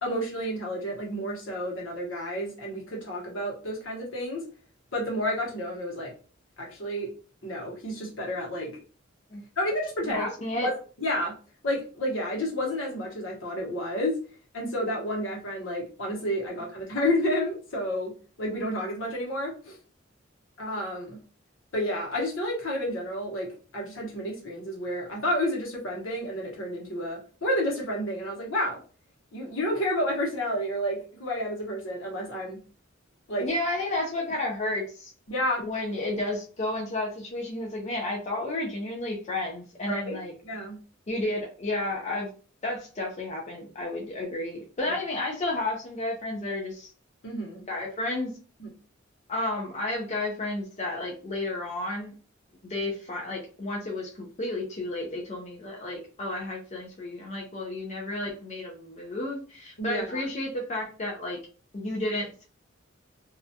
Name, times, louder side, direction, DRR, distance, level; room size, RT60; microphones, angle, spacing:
voice 1, 0.0-4.4 4.9-6.1 6.6-7.1 7.4-8.7 9.6-10.3 10.6-11.3 11.6-14.2 14.5-18.1 18.4-19.8 20.6-21.2 21.7-28.8 29.3-32.6 33.3-33.5 35.3-35.6 39.9-40.2 40.4-40.8 44.9-45.0 47.2-47.6 48.6-48.7 59.8-60.2, equal, 75° left, -2 dB, 0.9 m, -30 dB
voice 2, 10.0-10.7 33.4-35.1 35.6-40.3 41.1-42.3 42.6-46.9 47.7-48.3 49.3-52.1 52.6-61.4 61.7-62.4, left 2 dB, 35° left, -1 dB, 0.4 m, -32 dB
2.3 x 2.1 x 2.6 m, 0.38 s
head